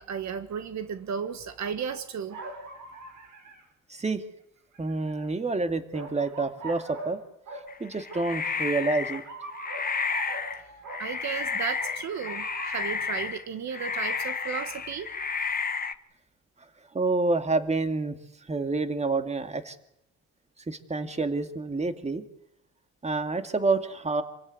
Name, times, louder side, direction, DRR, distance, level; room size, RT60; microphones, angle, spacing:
voice 1, 0.0-2.4 11.0-15.1, right 7 dB, 65° right, 10 dB, 1.5 m, -34 dB
sound 1, 2.3-3.6 4.7-5.3 5.9-7.1 7.5-7.7 8.1-8.3 9.1-11.0 11.8-12.8, right 3 dB, 85° right, 6.6 m, -41 dB
voice 2, 3.9-4.2 4.8-7.2 7.8-9.2 16.9-18.2 18.5-19.8 20.7-22.2 23.0-24.2, right 3 dB, 20° right, 8 dB, 2.4 m, -28 dB
sound 2, 7.7-9.3 9.5-10.6 10.9-13.4 13.7-15.9, left 5 dB, 30° left, 1.3 m, -32 dB
27.5 x 16.5 x 9.5 m, 0.79 s
cardioid pair, 90°, 30 cm